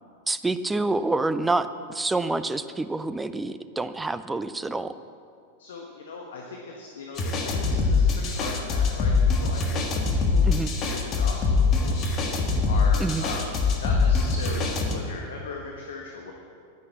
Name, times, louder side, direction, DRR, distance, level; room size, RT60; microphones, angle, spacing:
voice 1, 0.3-4.9 10.4-10.7 13.0-13.2, right 2 dB, 10° right, 12 dB, 0.5 m, -27 dB
voice 2, 5.6-9.8 10.1-12.1 12.7-13.5 13.8-16.3, left 3 dB, 60° left, 0 dB, 1.5 m, -38 dB
sound 1, 7.2-14.9, left 4 dB, 30° left, 1.7 m, -23 dB
10.5 x 10.5 x 7.5 m, 2.3 s
figure-of-eight pair, 90°, 0 cm